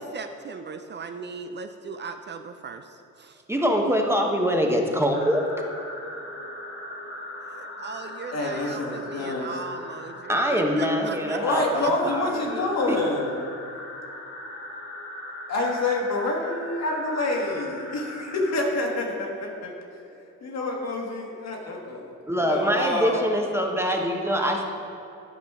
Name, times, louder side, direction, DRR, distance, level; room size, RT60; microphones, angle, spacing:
voice 1, 0.0-3.4 7.5-11.9, right 5 dB, 35° right, 7 dB, 0.4 m, -38 dB
voice 2, 3.5-5.6 10.3-13.0 22.3-24.6, equal, 10° right, 1 dB, 0.9 m, -24 dB
sound 1, 5.1-18.7, left 1 dB, 45° left, 1.1 m, -39 dB
voice 3, 8.3-9.6 11.4-13.3 15.5-19.7 20.4-22.1 22.4-23.2, left 2 dB, 60° left, 0 dB, 1.5 m, -27 dB
10.5 x 5.1 x 3.6 m, 2.7 s
cardioid pair, 90°, 30 cm